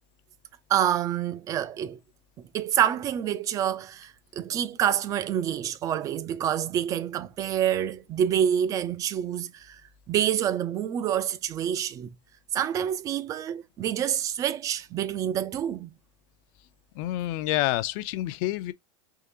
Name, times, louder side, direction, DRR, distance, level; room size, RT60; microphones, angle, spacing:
voice 1, 0.7-2.0 2.5-9.8 10.1-12.1 12.5-15.9, right 10 dB, 25° right, 0.4 m, -27 dB
voice 2, 17.0-18.7, left 15 dB, 55° left, 0.5 m, -28 dB
3.7 x 2.9 x 2.7 m
supercardioid pair, 155°, 13 cm